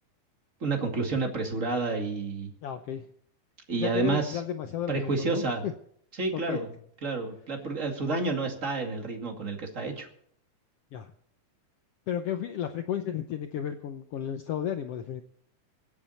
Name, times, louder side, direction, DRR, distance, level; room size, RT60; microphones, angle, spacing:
voice 1, 0.6-2.5 3.7-4.4 4.9-5.6 6.2-6.7 7.0-10.1, right 3 dB, 25° right, 3 dB, 2.2 m, -29 dB
voice 2, 2.6-3.1 3.8-5.7 6.3-6.6 10.9-11.1 12.1-15.2, left 9 dB, 85° left, 7 dB, 1.3 m, -33 dB
24.5 x 8.6 x 4.2 m, 0.64 s
omnidirectional pair, 3.8 m